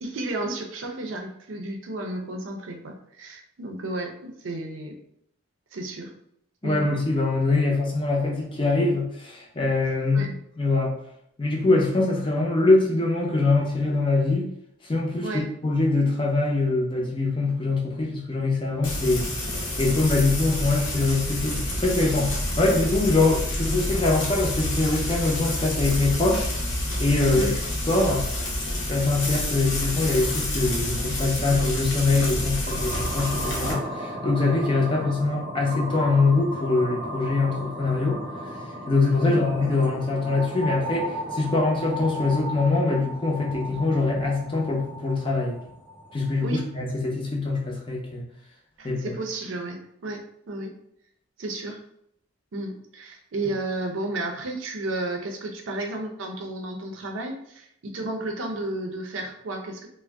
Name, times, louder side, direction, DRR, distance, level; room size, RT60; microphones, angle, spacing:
voice 1, 0.0-5.0 5.7-6.1 6.6-6.9 10.1-10.3 15.2-15.5 27.3-27.6 39.2-39.4 46.4-46.7 48.8-50.7 51.4-51.8 52.5-59.9, right 2 dB, 85° right, 3 dB, 0.5 m, -32 dB
voice 2, 6.6-10.9 11.4-14.5 14.8-15.3 15.6-19.2 19.8-26.5 27.0-27.6 27.9-28.2 28.9-38.2 38.9-45.6 46.1-48.2 48.8-49.0, left 3 dB, 25° left, -1 dB, 0.5 m, -23 dB
Frying (food), 18.8-33.7, left 1 dB, 75° left, 0.8 m, -28 dB
sound 1, 32.7-46.7, equal, 40° right, 0.7 m, -35 dB
2.5 x 2.0 x 3.3 m, 0.74 s
head